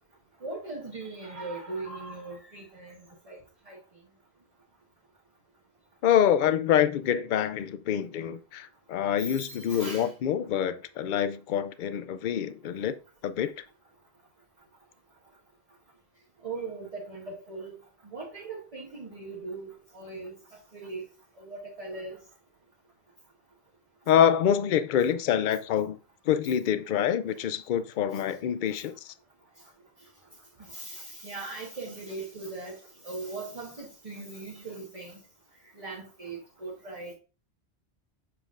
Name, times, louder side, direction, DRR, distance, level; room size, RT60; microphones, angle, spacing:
voice 1, 0.4-3.4 3.7-3.8 9.2-10.1 16.4-17.8 18.1-20.3 20.7-21.0 21.4-22.2 28.1-28.2 30.6-35.2 35.7-37.1, right 3 dB, 35° right, 1.2 m, -39 dB
voice 2, 6.0-13.0 13.2-13.6 24.1-26.0 26.3-29.1, left 9 dB, 60° left, 0.6 m, -26 dB
7.1 x 5.9 x 2.5 m
omnidirectional pair, 1.1 m